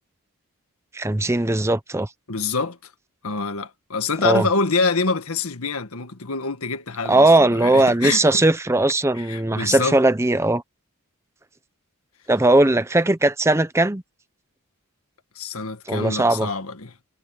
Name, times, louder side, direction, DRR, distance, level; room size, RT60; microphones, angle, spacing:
voice 1, 0.9-2.1 4.2-4.5 7.1-10.6 12.3-14.0 15.9-16.5, right 2 dB, 10° right, 0.7 m, -18 dB
voice 2, 2.3-2.8 3.2-8.4 9.1-10.0 15.3-16.9, left 4 dB, 80° left, 1.7 m, -26 dB
head